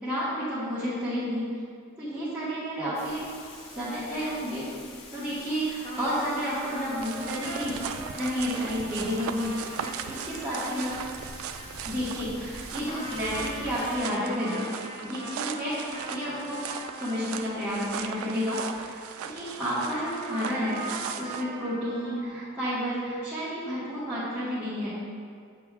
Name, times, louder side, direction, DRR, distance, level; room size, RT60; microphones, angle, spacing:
voice 1, 0.0-1.5 2.0-3.2 3.5-4.7 5.1-7.8 8.2-10.9 11.8-14.7 15.0-16.6 17.0-24.9, equal, 10° right, -14 dB, 1.4 m, -31 dB
Thunder / Rain, 2.9-14.0, left 2 dB, 80° left, 0.9 m, -46 dB
sound 1, 5.8-12.6 12.9-18.8 19.9-22.3, right 1 dB, 20° left, 0.7 m, -42 dB
sound 2, 7.0-21.4, right 8 dB, 80° right, 0.3 m, -38 dB
8.0 x 6.2 x 2.4 m, 2.2 s
head